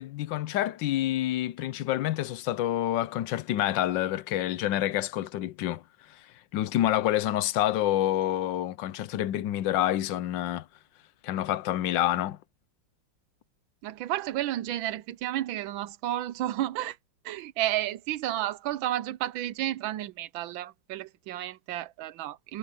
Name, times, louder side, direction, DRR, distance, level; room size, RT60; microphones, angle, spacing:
voice 1, 0.0-5.8 6.5-10.7 11.2-12.4, left 13 dB, 70° left, 1.3 m, -28 dB
voice 2, 13.8-17.0 17.2-22.6, right 13 dB, 80° right, 1.4 m, -32 dB
omnidirectional pair, 2.2 m